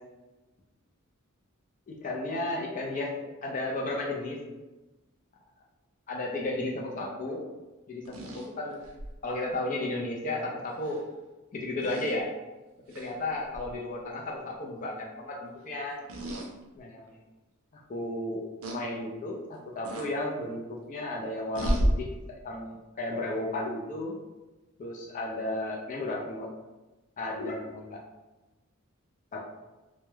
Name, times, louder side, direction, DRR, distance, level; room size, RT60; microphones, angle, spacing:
voice 1, 1.9-3.1 3.4-4.4 6.1-7.4 7.9-8.0 8.3-8.8 9.2-11.0 11.5-12.3 12.9-16.0 16.7-17.1 17.9-18.4 18.7-22.1 22.4-24.1 24.8-26.5 27.2-28.0 29.3-29.4, left 2 dB, 35° left, -2 dB, 0.4 m, -33 dB
sound 1, 8.0-9.2 10.8-11.0 11.8-12.1 12.9-13.1 13.5-13.7 16.1-16.5 17.1-17.2 18.6-18.8 19.8-20.1 21.5-21.9, equal, 75° right, 0.5 m, -31 dB
2.2 x 2.0 x 3.0 m, 1.1 s
head